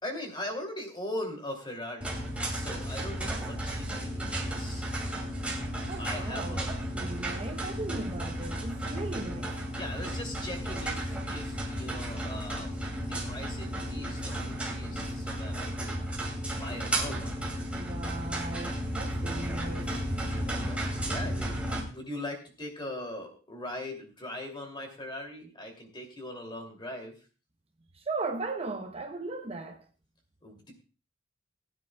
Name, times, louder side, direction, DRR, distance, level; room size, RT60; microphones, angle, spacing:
voice 1, 0.0-4.9 6.0-6.7 9.7-16.1 16.5-17.3 20.2-27.2 30.4-30.7, left 1 dB, 25° left, 2.8 m, -40 dB
sound 1, 2.0-21.8, right 1 dB, 5° right, 2.6 m, -33 dB
voice 2, 5.9-9.5 17.8-19.9 27.9-29.8, right 3 dB, 30° right, 0.8 m, -37 dB
20.0 x 9.7 x 2.3 m
head